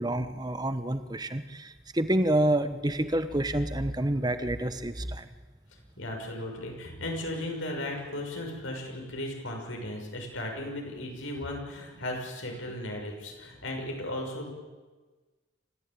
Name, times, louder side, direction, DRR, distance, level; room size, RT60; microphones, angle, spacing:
voice 1, 0.0-5.3, right 1 dB, 20° right, 11 dB, 1.1 m, -28 dB
voice 2, 6.0-14.5, left 1 dB, 85° left, 1 dB, 6.4 m, -36 dB
27.5 x 14.5 x 9.1 m, 1.3 s
head